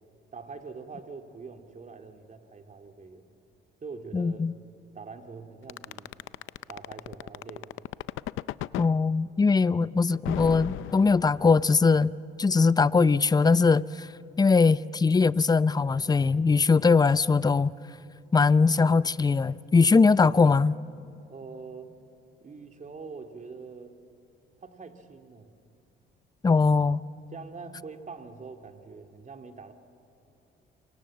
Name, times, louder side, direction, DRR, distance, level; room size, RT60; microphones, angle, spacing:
voice 1, 0.3-3.2 3.8-4.4 4.9-6.3 6.7-7.9 21.3-21.9 22.4-23.9 24.6-25.6 27.3-29.7, right 4 dB, 40° right, 2.4 m, -44 dB
voice 2, 4.1-4.5 8.8-12.1 12.4-14.1 14.4-17.7 18.3-20.8 26.4-27.0, left 4 dB, 20° left, 0.5 m, -21 dB
sound 1, 5.7-8.9 10.2-11.6, left 15 dB, 90° left, 0.6 m, -35 dB
28.5 x 25.0 x 7.6 m
cardioid pair, 90°, 20 cm